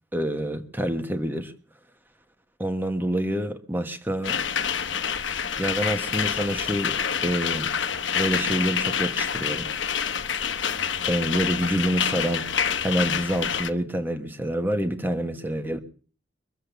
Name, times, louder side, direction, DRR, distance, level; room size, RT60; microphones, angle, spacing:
voice 1, 0.1-1.5 2.6-4.4 5.6-7.0 7.2-7.7 8.1-9.7 11.1-12.5 12.8-15.8, right 1 dB, 10° right, 1.3 m, -27 dB
sound 1, 4.2-13.7, left 7 dB, 80° left, 1.0 m, -27 dB
23.5 x 7.9 x 6.8 m
head